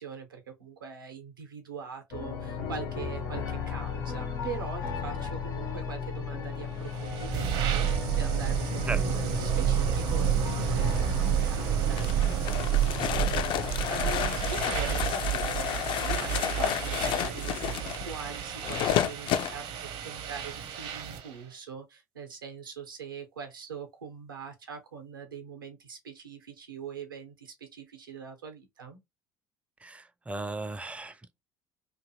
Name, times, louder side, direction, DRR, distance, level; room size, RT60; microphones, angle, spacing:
voice 1, 0.0-29.0, right 6 dB, 85° right, 0.8 m, -42 dB
sound 1, 2.1-15.5, left 6 dB, 75° left, 1.0 m, -36 dB
sound 2, 6.7-21.3, right 10 dB, 55° right, 0.7 m, -30 dB
sound 3, 12.0-19.5, left 10 dB, 50° left, 0.4 m, -30 dB
voice 2, 29.8-31.4, right 2 dB, 10° right, 0.4 m, -36 dB
2.7 x 2.5 x 2.7 m
hypercardioid pair, 65°, 11 cm